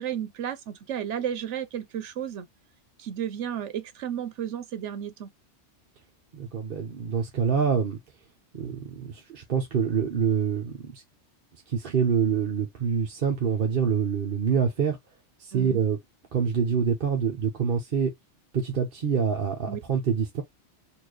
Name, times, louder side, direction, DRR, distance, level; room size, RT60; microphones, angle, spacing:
voice 1, 0.0-2.4 3.0-5.3 15.5-15.8 19.7-19.8, right 9 dB, 80° right, 1.1 m, -33 dB
voice 2, 6.3-8.0 8.5-11.0 11.7-15.0 15.4-16.0 16.3-18.1 18.5-20.4, right 6 dB, 50° right, 1.0 m, -26 dB
4.3 x 2.6 x 2.9 m
omnidirectional pair, 1.2 m